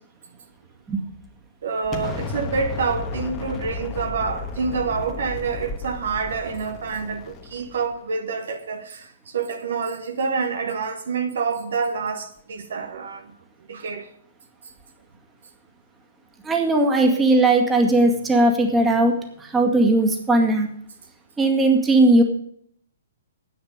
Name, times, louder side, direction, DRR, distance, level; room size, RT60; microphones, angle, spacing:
voice 1, 1.6-13.3 13.7-14.1, right 5 dB, 60° right, 1.3 m, -27 dB
Explosion, 1.9-7.9, left 4 dB, 20° left, 1.3 m, -34 dB
voice 2, 16.4-20.7 21.4-22.2, right 2 dB, 10° right, 2.0 m, -18 dB
10.0 x 9.4 x 6.5 m
figure-of-eight pair, 120°, 0 cm